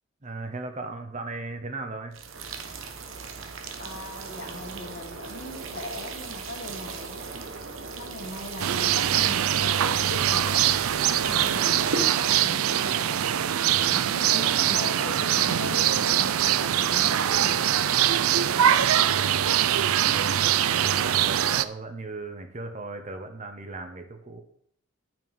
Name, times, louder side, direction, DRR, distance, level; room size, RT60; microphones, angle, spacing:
voice 1, 0.2-2.2 20.1-24.4, right 3 dB, 35° right, 6 dB, 1.0 m, -37 dB
sound 1, 2.1-12.1, right 4 dB, 65° right, 1.2 m, -37 dB
voice 2, 3.8-7.2 7.9-10.7 11.2-18.0 18.5-19.1, left 1 dB, 55° left, 2 dB, 1.9 m, -39 dB
sound 2, 8.6-21.6, right 10 dB, 85° right, 0.5 m, -23 dB
9.2 x 6.0 x 5.3 m, 0.65 s
head